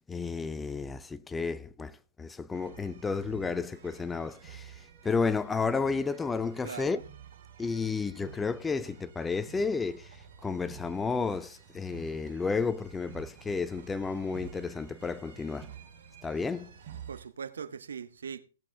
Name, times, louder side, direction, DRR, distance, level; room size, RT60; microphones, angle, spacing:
voice 1, 0.1-7.0 7.6-15.7 16.2-16.7, left 4 dB, 10° left, 0.4 m, -32 dB
sound 1, 2.5-17.2, right 8 dB, 50° right, 4.0 m, -50 dB
voice 2, 6.6-7.0 17.1-18.4, right 6 dB, 70° right, 1.1 m, -40 dB
16.5 x 7.4 x 3.5 m
hypercardioid pair, 125°, 0 cm